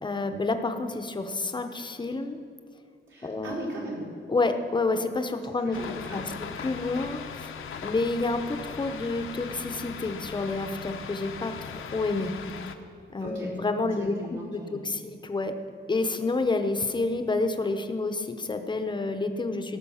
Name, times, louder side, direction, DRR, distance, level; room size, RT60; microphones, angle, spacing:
voice 1, 0.0-2.4 3.2-3.7 4.3-5.8 6.1-6.2 6.6-7.5 7.8-12.3 13.1-15.6 15.9-19.8, left 3 dB, 20° left, 7 dB, 0.7 m, -29 dB
voice 2, 3.1-4.0 5.6-6.6 13.2-13.5 14.0-15.1, right 1 dB, 65° right, -7 dB, 3.7 m, -39 dB
sound 1, 5.7-12.8, left 6 dB, 75° left, 0.8 m, -39 dB
18.0 x 6.3 x 5.6 m, 2.3 s
wide cardioid pair, 155°, 21 cm